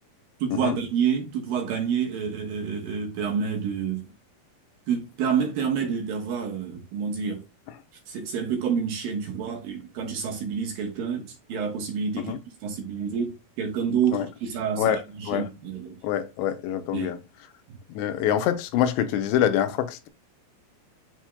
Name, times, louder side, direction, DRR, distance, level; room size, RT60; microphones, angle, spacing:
voice 1, 0.4-4.1 4.9-7.4 8.1-12.3 12.6-16.0 16.9-17.1 17.7-17.8, right 7 dB, 65° right, 2.6 m, -28 dB
voice 2, 16.0-17.2 17.9-20.1, left 10 dB, 85° left, 3.1 m, -25 dB
11.5 x 4.5 x 2.2 m
omnidirectional pair, 5.1 m